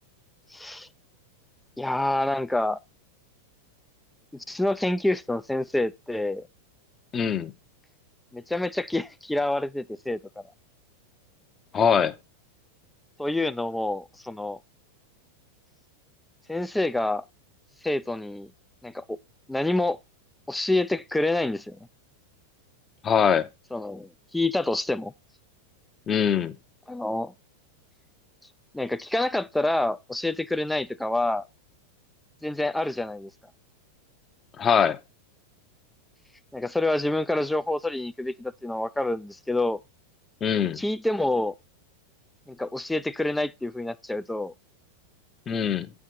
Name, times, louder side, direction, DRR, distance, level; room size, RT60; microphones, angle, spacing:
voice 1, 0.5-0.9 1.8-2.8 4.3-6.5 8.3-10.2 13.2-14.6 16.5-17.2 17.8-18.5 18.8-19.2 19.5-20.0 20.5-21.8 23.7-25.1 26.9-27.3 28.7-31.4 32.4-33.3 36.5-39.8 40.8-41.5 42.5-44.5, left 2 dB, 5° left, 0.4 m, -27 dB
voice 2, 7.1-7.5 11.7-12.1 23.0-23.5 26.1-26.5 34.6-35.0 40.4-40.8 45.5-45.9, left 7 dB, 25° left, 0.8 m, -22 dB
9.1 x 4.7 x 5.7 m
figure-of-eight pair, 90°, 0 cm